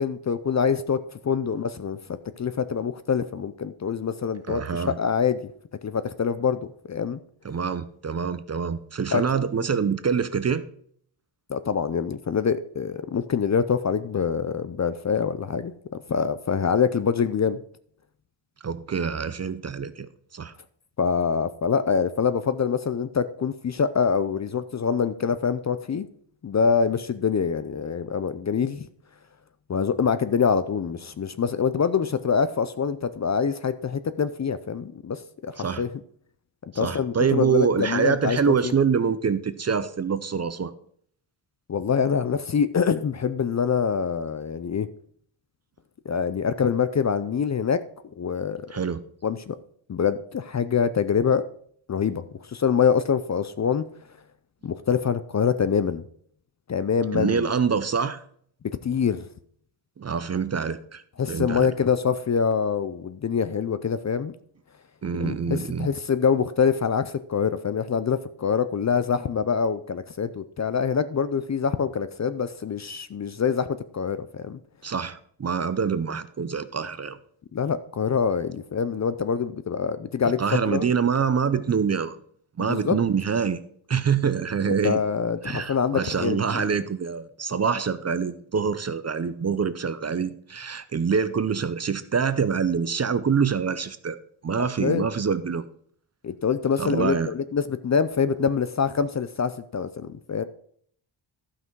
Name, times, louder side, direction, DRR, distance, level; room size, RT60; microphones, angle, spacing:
voice 1, 0.0-5.4 5.8-7.2 9.1-9.4 11.5-15.7 16.1-17.6 21.0-26.1 26.4-28.9 29.7-35.5 35.8-35.9 36.6-38.4 38.6-38.7 41.7-44.9 46.1-47.8 48.2-48.7 49.2-49.6 49.9-51.4 51.9-53.9 54.6-56.0 56.7-57.5 58.8-59.3 61.2-64.3 65.2-73.7 73.9-74.6 77.5-80.9 82.6-83.0 84.7-86.7 94.8-95.1 96.2-100.4, left 6 dB, 35° left, 13 dB, 0.5 m, -25 dB
voice 2, 4.5-5.0 7.4-10.6 18.6-20.5 35.6-35.8 36.7-40.7 48.7-49.0 57.1-58.2 60.0-61.0 61.3-61.7 65.0-65.9 74.8-77.2 80.4-82.2 82.6-83.6 83.9-85.0 85.4-94.2 94.4-95.6 96.8-97.3, right 6 dB, 35° right, 13 dB, 0.5 m, -25 dB
12.0 x 5.8 x 4.6 m, 0.62 s
wide cardioid pair, 100°, 49 cm